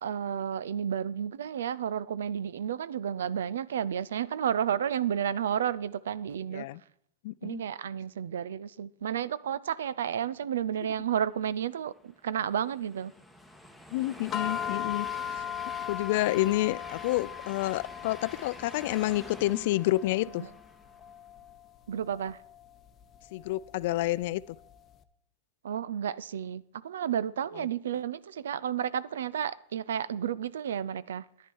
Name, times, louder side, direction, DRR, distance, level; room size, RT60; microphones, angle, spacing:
voice 1, 0.0-6.7 7.4-13.1 20.4-20.5 21.9-22.4 25.6-31.2, right 9 dB, 90° right, 0.4 m, -32 dB
voice 2, 7.2-7.6 13.9-15.4 15.9-20.5 23.3-24.4, left 17 dB, 65° left, 0.4 m, -29 dB
Train, 11.7-21.1, left 1 dB, ahead, 1.2 m, -47 dB
sound 1, 14.3-24.8, left 9 dB, 30° left, 0.8 m, -39 dB
10.0 x 10.0 x 4.6 m
hypercardioid pair, 125°, 0 cm